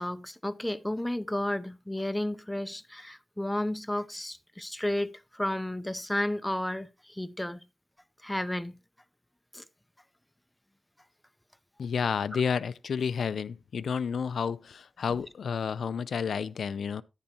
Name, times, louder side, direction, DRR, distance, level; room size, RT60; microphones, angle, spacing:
voice 1, 0.0-7.6 8.2-8.8 9.5-9.6, left 1 dB, 5° left, 0.5 m, -32 dB
voice 2, 11.8-17.0, left 6 dB, 80° left, 0.4 m, -30 dB
10.5 x 9.9 x 2.8 m
wide cardioid pair, 150°, 0 cm